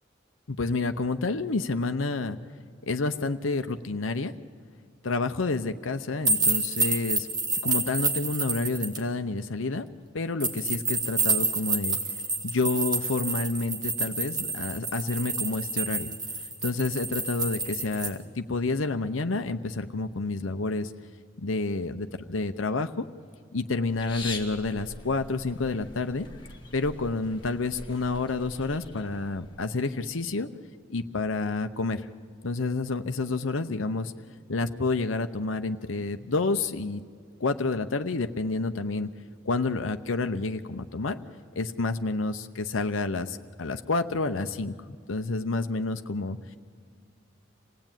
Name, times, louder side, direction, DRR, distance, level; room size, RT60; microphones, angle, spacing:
voice 1, 0.5-2.4 2.8-4.3 5.0-7.3 7.6-9.9 10.1-12.0 12.4-16.1 16.6-20.9 21.4-23.1 23.5-26.3 26.7-30.5 30.9-32.1 32.4-34.1 34.5-37.0 37.4-39.1 39.4-41.2 41.6-44.8 45.1-46.4, left 3 dB, 90° left, 7 dB, 0.8 m, -29 dB
sound 1, 6.2-9.0 10.4-18.1, right 3 dB, 20° right, 2.1 m, -28 dB
sound 2, 23.9-29.8, left 3 dB, 25° left, 2.0 m, -43 dB
26.5 x 17.5 x 9.1 m, 2.2 s
head